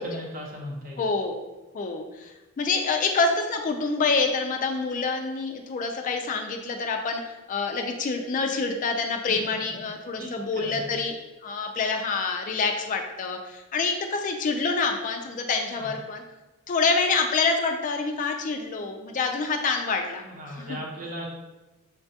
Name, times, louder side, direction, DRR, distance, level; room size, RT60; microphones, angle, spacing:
voice 1, 0.0-1.0 9.3-9.4 10.2-11.0 15.8-15.9 20.2-21.3, equal, 40° right, -2 dB, 0.9 m, -37 dB
voice 2, 1.0-1.4 1.7-7.2 7.5-11.2 11.4-16.2 16.7-20.2 20.6-20.8, left 4 dB, 40° left, 3 dB, 0.3 m, -27 dB
5.7 x 2.2 x 2.7 m, 1.1 s
head